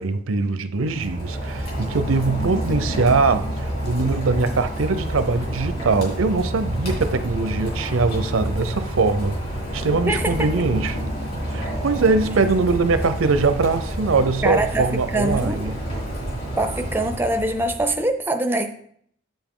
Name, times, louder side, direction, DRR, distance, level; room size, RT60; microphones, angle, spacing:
voice 1, 0.0-9.4 9.7-11.0 11.5-15.7, right 3 dB, 85° right, 0.6 m, -22 dB
Rain, 0.7-18.0, equal, 45° left, 3.2 m, -28 dB
voice 2, 10.1-10.5 14.4-15.7 16.6-18.7, right 1 dB, 10° right, 0.4 m, -23 dB
7.5 x 7.1 x 3.7 m
head